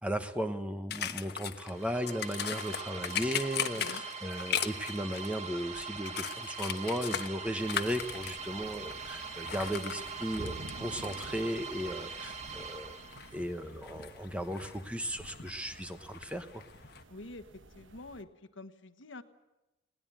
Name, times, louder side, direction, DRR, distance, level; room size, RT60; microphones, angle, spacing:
voice 1, 0.0-13.0 13.3-16.6, equal, 5° right, 8 dB, 1.1 m, -36 dB
sound 1, 0.9-17.0, left 9 dB, 55° left, 1.2 m, -40 dB
sound 2, 1.6-13.5, right 5 dB, 35° right, 1.7 m, -42 dB
sound 3, 7.5-18.2, right 2 dB, 80° right, 1.3 m, -51 dB
voice 2, 17.1-18.3 18.5-19.2, left 2 dB, 75° left, 9 dB, 1.4 m, -47 dB
20.5 x 18.0 x 8.9 m, 1.0 s
head